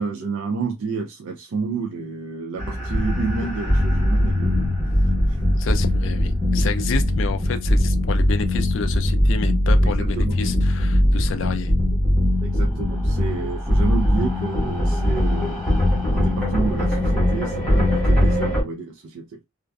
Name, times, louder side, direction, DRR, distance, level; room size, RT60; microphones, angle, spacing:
voice 1, 0.0-4.7 5.0-5.4 9.8-10.4 12.4-15.6 16.1-19.4, right 4 dB, 65° right, 0.4 m, -30 dB
sound 1, 2.6-18.6, left 1 dB, 5° left, 1.0 m, -20 dB
voice 2, 5.5-11.7, left 5 dB, 60° left, 0.4 m, -30 dB
2.4 x 2.2 x 2.2 m
head